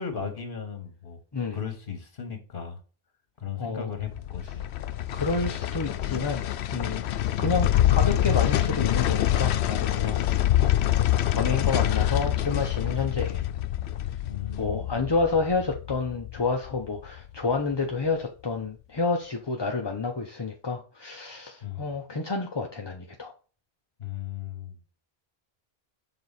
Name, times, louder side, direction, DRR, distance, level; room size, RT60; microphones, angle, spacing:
voice 1, 0.0-1.2 1.5-2.8 3.4-4.7 14.3-15.1 21.6-22.0 24.0-24.7, left 7 dB, 55° left, 1.6 m, -36 dB
voice 2, 3.6-3.9 5.1-6.4 6.7-7.0 7.4-10.3 10.6-10.8 11.3-13.5 14.6-23.3, left 4 dB, 30° left, 0.6 m, -29 dB
sound 1, 4.0-17.2 17.5-17.6, left 12 dB, 85° left, 0.8 m, -26 dB
6.7 x 4.0 x 4.1 m
omnidirectional pair, 1.1 m